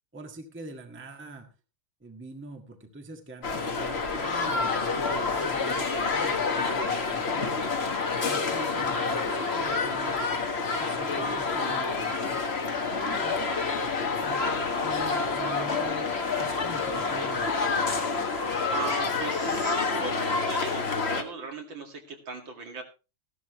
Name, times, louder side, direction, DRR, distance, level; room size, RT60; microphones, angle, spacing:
voice 1, 0.1-1.5 2.0-7.8 8.2-10.3 10.8-12.4 12.9-17.6, right 2 dB, 5° right, 3 dB, 1.4 m, -44 dB
sound 1, 3.4-21.2, left 4 dB, 35° left, 1.4 m, -28 dB
voice 2, 18.1-22.8, right 3 dB, 65° right, 3 dB, 2.9 m, -38 dB
15.5 x 12.0 x 3.1 m, 0.30 s
omnidirectional pair, 2.3 m